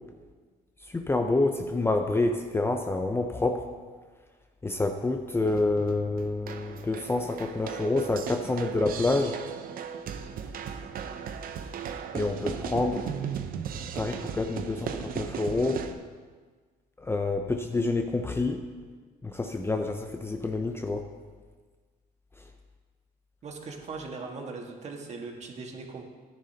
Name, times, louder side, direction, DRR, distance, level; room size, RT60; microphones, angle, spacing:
voice 1, 0.9-3.7 4.6-9.4 12.1-13.0 14.0-15.8 17.1-18.6 19.2-21.0, left 2 dB, 15° left, 5 dB, 0.6 m, -27 dB
sound 1, 5.4-15.9, right 7 dB, 60° right, 0.8 m, -37 dB
voice 2, 23.4-26.0, right 4 dB, 40° right, 1 dB, 1.6 m, -39 dB
13.0 x 10.5 x 2.8 m, 1.5 s
cardioid pair, 110°, 17 cm